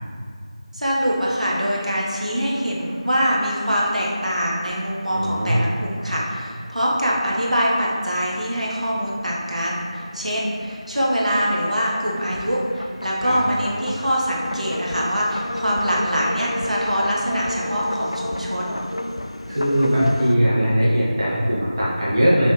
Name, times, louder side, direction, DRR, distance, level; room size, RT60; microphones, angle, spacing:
voice 1, 0.7-18.8, equal, 80° right, -4 dB, 1.5 m, -24 dB
sound 1, 1.0-20.4, left 1 dB, 55° left, 0.4 m, -34 dB
voice 2, 5.1-5.7 13.2-13.4 19.5-22.5, equal, 40° right, -7 dB, 1.6 m, -20 dB
6.9 x 5.6 x 3.3 m, 2.1 s
figure-of-eight pair, 170°, 4 cm